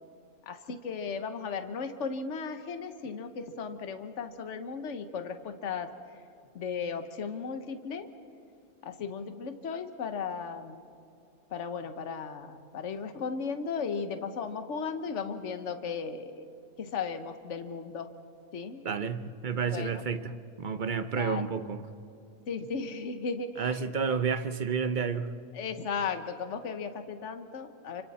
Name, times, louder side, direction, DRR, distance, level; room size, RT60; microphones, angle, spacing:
voice 1, 0.4-5.9 6.5-8.1 8.8-10.8 11.5-16.5 16.8-18.1 18.5-18.8 19.6-19.9 21.1-21.5 22.5-23.8 25.5-28.0, left 5 dB, 55° left, 8 dB, 1.4 m, -36 dB
voice 2, 18.8-21.8 23.6-25.4, right 6 dB, 40° right, 11 dB, 0.8 m, -30 dB
29.0 x 25.0 x 4.3 m, 2.7 s
omnidirectional pair, 1.5 m